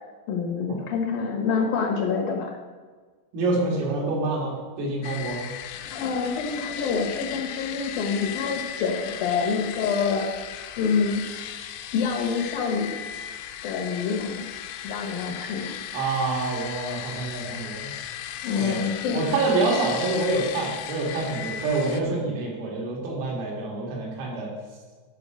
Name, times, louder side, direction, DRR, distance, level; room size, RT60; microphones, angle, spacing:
voice 1, 0.3-2.6 5.9-10.3 10.8-11.3 11.9-13.0 13.6-14.5 14.8-15.7 18.4-19.3, left 5 dB, 70° left, 1 dB, 2.3 m, -26 dB
voice 2, 3.3-5.4 15.9-17.9 18.6-18.8 19.1-24.5, right 3 dB, 80° right, -2 dB, 4.9 m, -27 dB
sound 1, 5.0-22.0, left 10 dB, 85° left, 3.4 m, -36 dB
12.5 x 5.9 x 6.4 m, 1.4 s
omnidirectional pair, 5.8 m